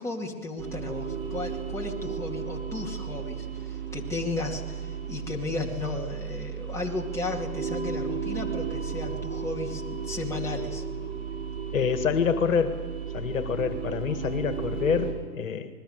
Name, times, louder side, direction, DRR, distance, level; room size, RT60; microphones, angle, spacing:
voice 1, 0.0-10.8, left 3 dB, 5° left, -1 dB, 2.4 m, -34 dB
sound 1, 0.6-15.1, right 6 dB, 55° right, 6.7 m, -34 dB
voice 2, 11.7-12.9 13.1-15.7, left 6 dB, 60° left, 9 dB, 2.0 m, -26 dB
27.0 x 21.0 x 6.7 m, 1.5 s
figure-of-eight pair, 120°, 45 cm